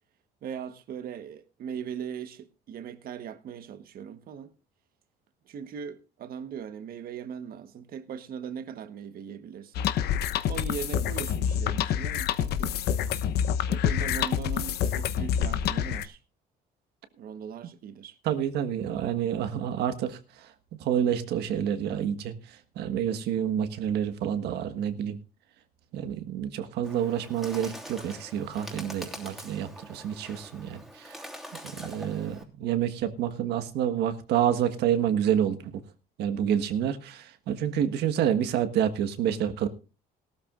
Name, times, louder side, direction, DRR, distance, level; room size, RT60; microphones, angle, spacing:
voice 1, 0.4-4.5 5.5-9.9 10.4-12.8 13.7-16.2 17.1-18.2, right 7 dB, 60° right, 1.3 m, -39 dB
sound 1, 9.7-16.0, left 9 dB, 75° left, 1.0 m, -27 dB
voice 2, 18.2-20.2 20.8-22.3 22.7-25.2 25.9-31.2 31.6-35.8 36.2-39.7, right 9 dB, 80° right, 1.5 m, -28 dB
Bird, 26.8-32.4, equal, ahead, 3.1 m, -44 dB
18.0 x 13.0 x 2.5 m
cardioid pair, 110°, 17 cm